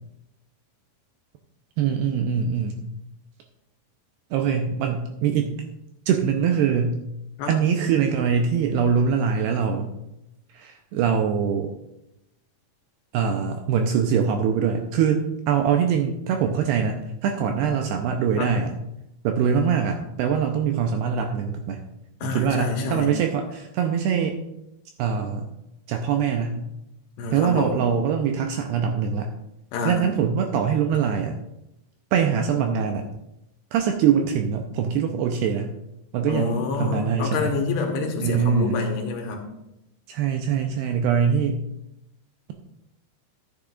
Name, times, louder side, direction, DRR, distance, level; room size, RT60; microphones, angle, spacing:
voice 1, 1.8-2.8 4.3-5.6 6.1-7.0 7.5-10.0 10.5-11.7 13.1-18.7 19.2-21.8 22.2-24.4 25.0-25.5 25.9-26.6 27.3-29.3 29.9-31.4 32.1-33.1 33.7-35.7 36.1-37.5 38.2-38.8 40.1-41.6, right 7 dB, 85° right, 4 dB, 2.4 m, -23 dB
voice 2, 22.2-23.1 27.2-27.8 29.7-30.1 36.3-39.5, left 3 dB, 75° left, 2 dB, 2.9 m, -27 dB
13.0 x 8.7 x 2.4 m, 0.87 s
omnidirectional pair, 5.2 m